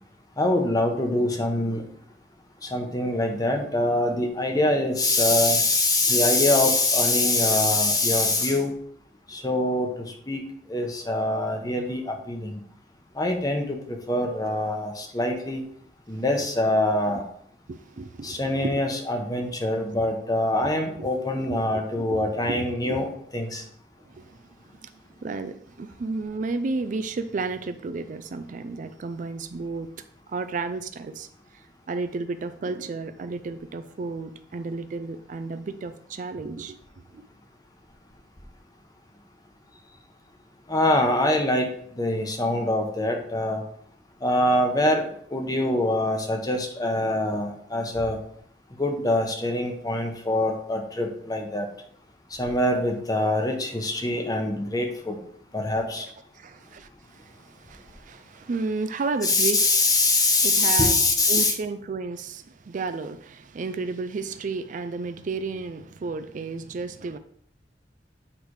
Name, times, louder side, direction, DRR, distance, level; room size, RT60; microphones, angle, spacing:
voice 1, 0.4-1.8 2.6-8.7 9.3-9.9 10.3-10.4 10.7-12.5 13.2-15.6 16.1-17.3 18.2-23.1 23.3-23.6 40.7-41.7 42.0-43.6 44.2-45.0 45.3-48.2 48.8-51.7 52.4-55.2 55.5-56.1 59.2-61.5, left 2 dB, 20° left, 1.0 m, -24 dB
voice 2, 17.7-18.8 19.4-19.5 20.6-20.7 21.0-21.1 21.5-23.0 24.1-24.5 24.8-24.9 25.2-29.9 30.3-36.8 37.1-37.2 56.3-59.9 60.4-61.0 61.3-67.2, right 3 dB, 45° right, 0.4 m, -33 dB
8.6 x 3.4 x 4.7 m
head